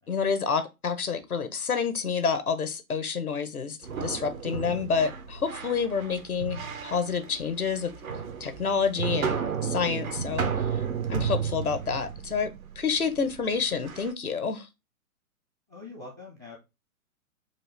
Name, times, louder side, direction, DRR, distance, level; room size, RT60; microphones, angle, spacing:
voice 1, 0.1-7.9 8.4-10.8 11.1-14.7, left 5 dB, 85° left, 0.9 m, -29 dB
sound 1, 3.8-14.1, right 6 dB, 70° right, 1.0 m, -33 dB
voice 2, 15.7-16.6, left 3 dB, 15° right, 0.3 m, -44 dB
4.3 x 2.5 x 3.1 m
figure-of-eight pair, 115°, 43 cm